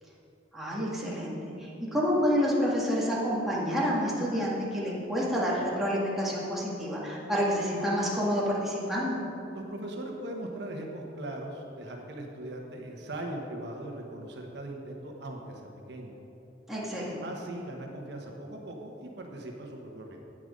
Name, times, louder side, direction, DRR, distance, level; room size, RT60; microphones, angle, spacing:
voice 1, 0.5-9.2 16.7-17.2, equal, ahead, -6 dB, 2.1 m, -28 dB
voice 2, 9.5-16.1 17.2-20.2, right 1 dB, 65° right, 1 dB, 1.1 m, -39 dB
10.0 x 9.0 x 5.3 m, 2.9 s
head